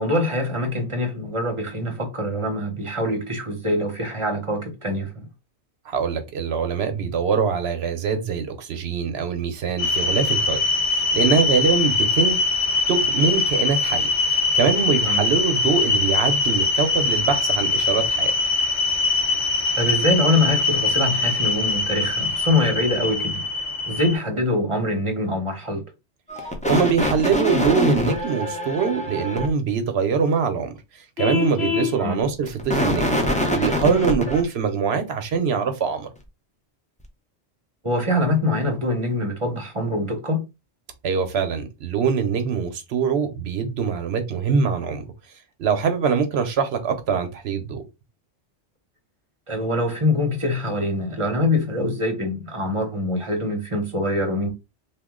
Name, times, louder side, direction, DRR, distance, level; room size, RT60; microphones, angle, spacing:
voice 1, 0.0-5.3 15.1-15.3 19.8-23.4 23.9-25.8 32.0-32.2 37.8-40.4 49.5-54.5, left 1 dB, 30° right, 0.8 m, -24 dB
voice 2, 5.8-10.6 10.9-12.4 12.9-18.3 26.7-33.1 33.5-36.1 41.0-45.0 45.6-47.8, right 6 dB, 65° right, 0.9 m, -23 dB
sound 1, 9.8-24.2, left 3 dB, 45° left, 0.8 m, -22 dB
sound 2, 26.3-29.5 32.3-34.4, left 1 dB, 10° left, 0.4 m, -24 dB
Vehicle horn car horn honking, 31.2-32.0, left 8 dB, 70° left, 0.9 m, -24 dB
2.9 x 2.3 x 3.6 m
omnidirectional pair, 1.2 m